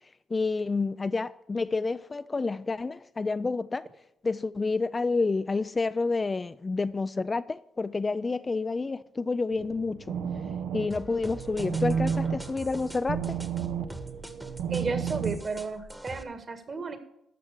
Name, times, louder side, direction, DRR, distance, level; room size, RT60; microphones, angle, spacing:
voice 1, 0.3-3.9 4.2-10.2 10.7-13.4, left 3 dB, 25° left, 0.3 m, -29 dB
sound 1, 9.5-15.4, right 7 dB, 80° right, 0.9 m, -32 dB
sound 2, 10.9-16.2, right 2 dB, 10° right, 1.2 m, -43 dB
voice 2, 14.7-17.0, right 4 dB, 40° right, 1.7 m, -33 dB
13.5 x 5.9 x 6.7 m
cardioid pair, 90°, 0 cm